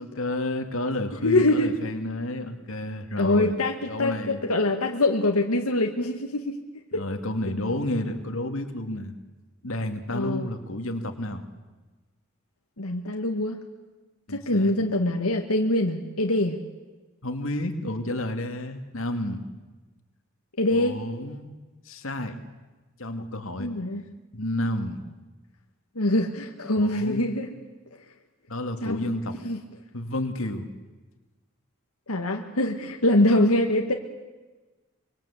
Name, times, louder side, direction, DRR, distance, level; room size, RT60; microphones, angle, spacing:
voice 1, 0.0-3.5 3.9-4.4 6.9-9.1 9.6-11.5 14.3-14.7 17.2-19.4 20.7-21.5 21.9-22.4 23.0-23.7 24.3-25.0 26.8-27.3 28.5-29.4 29.9-30.7, left 1 dB, 70° left, 5 dB, 2.5 m, -31 dB
voice 2, 1.2-1.7 3.2-6.6 6.9-7.0 10.1-10.5 12.8-13.6 14.3-16.6 20.6-21.0 23.6-24.0 26.0-27.5 28.8-29.0 29.4-29.6 32.1-33.9, left 1 dB, 90° left, 3 dB, 1.9 m, -24 dB
24.5 x 24.0 x 8.4 m, 1.2 s
head